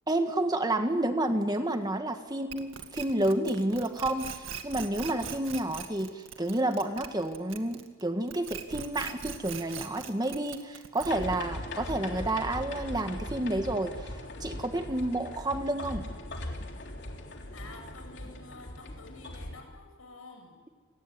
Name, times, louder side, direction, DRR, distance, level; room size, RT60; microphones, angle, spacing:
voice 1, 0.1-14.1 14.4-16.1, right 1 dB, 20° right, 6 dB, 1.6 m, -30 dB
sound 1, 2.5-8.0 8.3-11.4, right 7 dB, 65° right, 2.1 m, -41 dB
sound 2, 11.0-19.6, left 1 dB, 55° left, 3.5 m, -40 dB
voice 2, 17.5-20.6, left 3 dB, 80° left, 4 dB, 7.3 m, -50 dB
28.0 x 19.5 x 9.7 m, 1.4 s
head